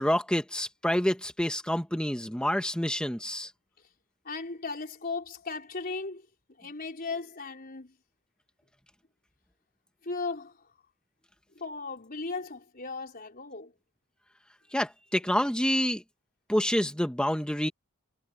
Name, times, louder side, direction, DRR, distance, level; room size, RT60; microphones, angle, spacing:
voice 1, 0.0-3.5 14.7-16.0 16.5-17.7, equal, 5° left, 1.2 m, -28 dB
voice 2, 4.2-6.3 6.6-7.9 10.0-10.6 11.5-13.7, left 3 dB, 45° left, 4.5 m, -36 dB
head